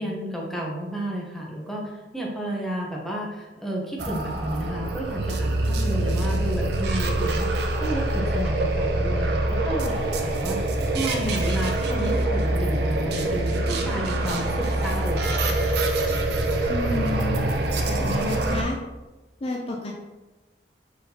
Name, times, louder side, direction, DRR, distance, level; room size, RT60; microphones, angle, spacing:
voice 1, 0.0-7.5 7.8-10.6 10.9-15.4, right 1 dB, ahead, -2 dB, 0.8 m, -31 dB
sound 1, 4.0-18.6, right 2 dB, 65° right, 0.5 m, -25 dB
voice 2, 16.7-17.5 17.9-18.8 19.4-19.9, left 2 dB, 35° left, 0 dB, 0.4 m, -30 dB
4.3 x 3.9 x 2.8 m, 1.1 s
head